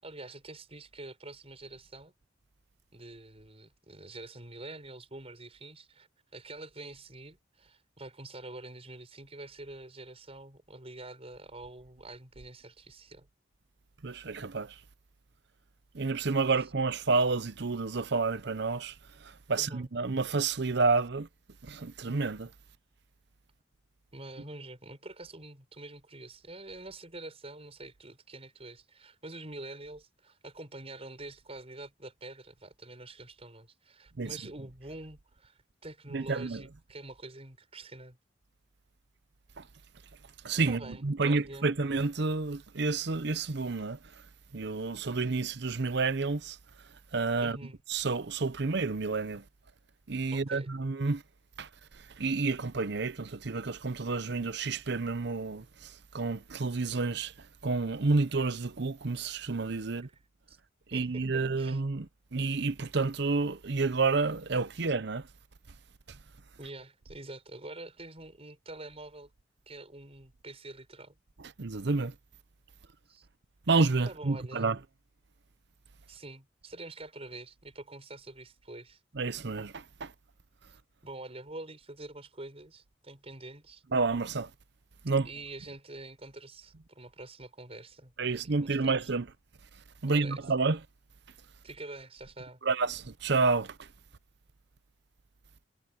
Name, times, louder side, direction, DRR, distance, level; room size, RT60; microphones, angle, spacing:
voice 1, 0.0-2.1 2.9-13.3 19.6-19.9 24.1-38.2 40.7-41.7 47.4-47.8 50.3-50.7 60.5-60.6 60.9-61.8 66.6-69.3 69.7-71.2 73.1-73.3 74.1-74.7 76.1-79.0 81.0-83.8 85.2-89.1 90.1-90.4 91.6-92.6, right 2 dB, 35° right, 6.4 m, -46 dB
voice 2, 14.0-14.7 15.9-18.9 19.2-21.3 21.6-22.5 34.2-34.4 36.1-36.6 39.6-39.7 40.4-44.0 44.5-46.6 47.1-47.6 47.9-49.4 50.1-51.2 51.6-51.7 52.2-57.3 57.6-60.1 60.9-65.3 71.6-72.1 73.7-74.8 79.2-80.1 83.9-84.5 85.0-85.3 88.2-89.3 90.0-90.8 92.6-93.9, right 3 dB, 60° right, 0.8 m, -30 dB
head